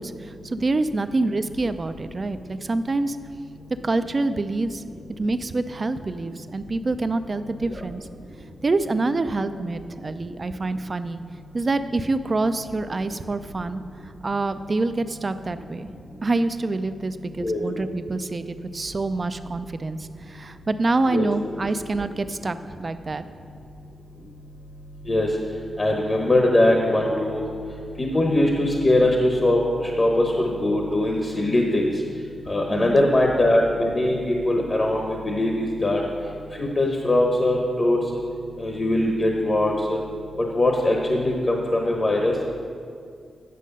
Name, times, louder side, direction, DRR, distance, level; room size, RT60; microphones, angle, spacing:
voice 1, 0.0-3.2 3.8-4.8 5.2-8.1 8.6-11.2 11.5-13.8 14.2-15.9 16.2-23.2 32.7-33.1, right 2 dB, 35° right, 11 dB, 0.4 m, -26 dB
voice 2, 25.8-27.4 28.0-30.3 30.6-31.9 32.5-36.0 36.6-38.0 38.6-40.0 40.5-42.5, left 1 dB, 35° left, 0 dB, 0.9 m, -21 dB
9.3 x 6.4 x 5.4 m, 2.3 s
cardioid pair, 90°, 0 cm